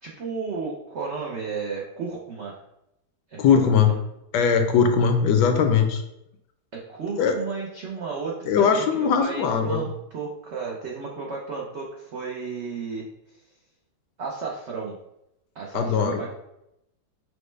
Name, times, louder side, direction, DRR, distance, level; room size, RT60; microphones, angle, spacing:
voice 1, 0.0-2.6 3.3-4.0 6.7-13.4 14.2-15.0 15.5-16.3, right 4 dB, 75° right, -2 dB, 0.6 m, -33 dB
voice 2, 3.4-3.9 4.3-6.0 7.2-7.3 8.5-9.8 15.7-16.2, left 6 dB, 75° left, 6 dB, 1.1 m, -20 dB
6.1 x 2.1 x 3.2 m, 0.84 s
omnidirectional pair, 1.9 m